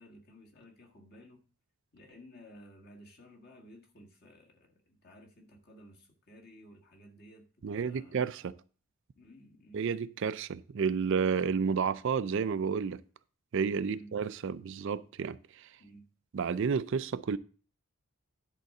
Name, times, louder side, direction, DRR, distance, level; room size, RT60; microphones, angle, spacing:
voice 1, 0.0-1.4 1.9-8.2 9.2-9.8 13.8-14.1 15.8-16.1, equal, 45° left, 1.8 m, -55 dB
voice 2, 7.6-8.5 9.7-13.0 13.5-15.7 16.3-17.4, right 6 dB, 55° right, 0.4 m, -31 dB
10.5 x 3.8 x 6.6 m
head